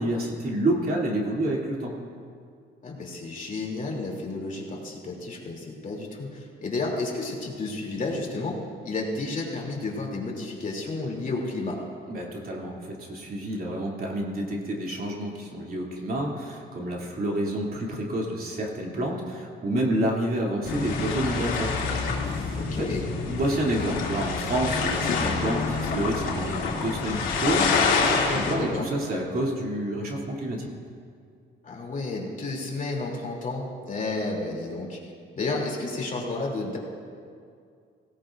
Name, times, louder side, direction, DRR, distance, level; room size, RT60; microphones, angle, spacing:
voice 1, 0.0-2.0 12.1-22.9 23.2-30.7, right 1 dB, 50° right, -2 dB, 2.8 m, -29 dB
voice 2, 2.8-8.6 8.8-11.8 22.6-23.1 28.3-28.9 31.6-35.0 35.3-36.8, left 3 dB, 40° left, -1 dB, 2.9 m, -31 dB
sound 1, 20.6-28.5, left 4 dB, 90° left, 2.4 m, -27 dB
17.5 x 17.0 x 2.6 m, 2.3 s
cardioid pair, 90°, 20 cm